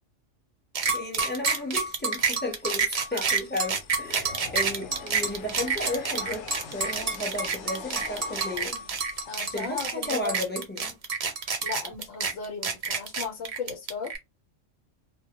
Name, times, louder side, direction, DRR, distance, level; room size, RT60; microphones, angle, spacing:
voice 1, 0.8-8.8 9.5-11.0, left 1 dB, 10° left, 0.5 m, -34 dB
sound 1, 0.8-14.2, right 5 dB, 55° right, 0.4 m, -28 dB
sound 2, 2.4-10.4, left 5 dB, 70° left, 0.8 m, -44 dB
voice 2, 9.2-10.5 11.6-14.1, left 5 dB, 85° left, 1.1 m, -36 dB
2.1 x 2.1 x 2.8 m
omnidirectional pair, 1.3 m